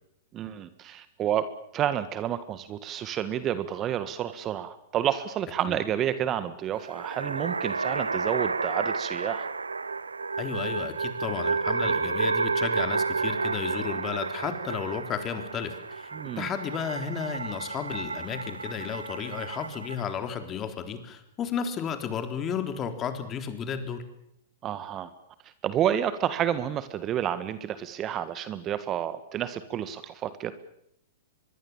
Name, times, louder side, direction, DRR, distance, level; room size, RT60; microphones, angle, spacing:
voice 1, 0.3-1.5 1.7-9.5 16.1-16.5 24.6-25.1 25.6-30.5, right 10 dB, 30° right, 12 dB, 1.6 m, -30 dB
sound 1, 6.8-20.2, right 4 dB, 90° right, 1.0 m, -31 dB
voice 2, 10.4-16.1 16.4-24.0, left 7 dB, 30° left, 7 dB, 3.6 m, -33 dB
24.0 x 22.0 x 7.3 m, 0.76 s
hypercardioid pair, 110°, 0 cm